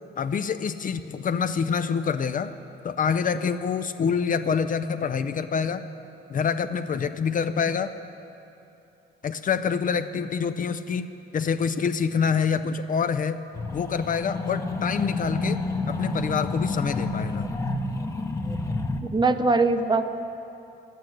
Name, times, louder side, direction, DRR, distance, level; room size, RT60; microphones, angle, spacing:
voice 1, 0.2-2.5 2.8-5.8 6.3-7.9 9.2-13.4 13.7-17.5, left 6 dB, 45° left, 10 dB, 0.5 m, -26 dB
sound 1, 13.5-19.0, left 2 dB, 15° left, 0.8 m, -29 dB
voice 2, 19.0-20.1, right 3 dB, 20° right, 9 dB, 0.7 m, -22 dB
11.5 x 9.3 x 7.8 m, 2.8 s
cardioid pair, 90°, 20 cm